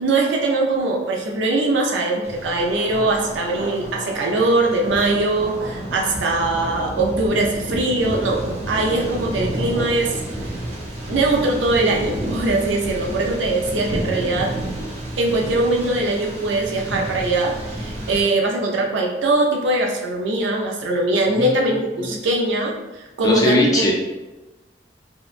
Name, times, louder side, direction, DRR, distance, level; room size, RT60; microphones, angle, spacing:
voice 1, 0.0-10.2 11.1-14.5 15.2-23.9, right 2 dB, 90° right, 0 dB, 0.5 m, -21 dB
Thunder, 2.2-18.2, right 1 dB, 35° right, 0.5 m, -30 dB
voice 2, 21.3-21.8 22.0-22.1 23.2-23.9, left 1 dB, 20° left, -3 dB, 0.4 m, -20 dB
2.7 x 2.1 x 2.4 m, 1.1 s
head